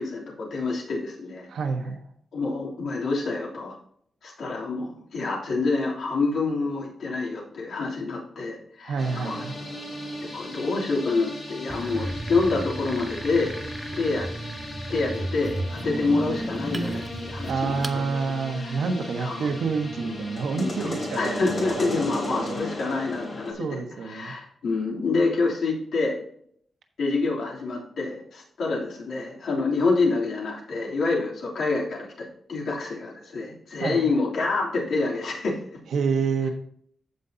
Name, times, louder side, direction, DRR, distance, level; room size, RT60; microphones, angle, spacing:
voice 1, 0.0-1.5 2.3-3.8 4.2-9.0 9.2-9.4 10.3-13.6 13.9-14.3 14.9-18.1 18.6-18.8 19.2-19.5 20.6-26.2 27.0-35.6, left 3 dB, 70° left, -4 dB, 3.1 m, -27 dB
voice 2, 1.5-2.0 8.8-9.6 17.5-22.6 23.6-24.3 33.8-34.0 35.9-36.5, right 5 dB, 85° right, 5 dB, 1.3 m, -28 dB
sound 1, 9.0-23.5, left 1 dB, 35° left, 3.3 m, -36 dB
sound 2, 11.7-18.0, right 1 dB, 10° right, 0.6 m, -34 dB
15.0 x 5.5 x 2.8 m, 0.65 s
wide cardioid pair, 160°, 0 cm